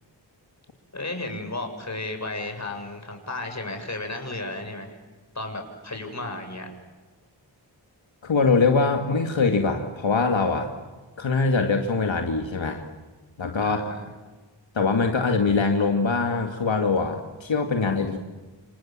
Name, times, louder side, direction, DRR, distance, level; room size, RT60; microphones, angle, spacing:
voice 1, 0.9-5.0 5.3-6.7 13.6-14.1, left 2 dB, 35° left, 5 dB, 6.7 m, -33 dB
voice 2, 8.2-10.7 11.2-12.8 13.4-13.8 14.7-18.2, left 4 dB, 85° left, 3 dB, 2.4 m, -23 dB
29.5 x 27.0 x 7.6 m, 1.3 s
wide cardioid pair, 90°, 45 cm